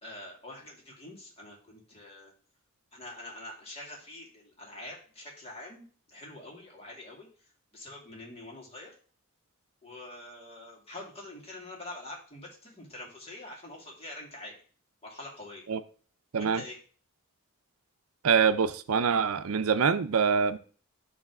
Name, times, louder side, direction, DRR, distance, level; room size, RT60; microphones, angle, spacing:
voice 1, 0.0-2.3 2.9-7.3 7.7-8.9 9.8-14.6 15.0-15.8 16.3-16.8, left 1 dB, 30° left, -1 dB, 2.3 m, -45 dB
voice 2, 18.2-20.6, right 6 dB, 85° right, 12 dB, 0.6 m, -25 dB
10.0 x 3.3 x 5.9 m, 0.42 s
head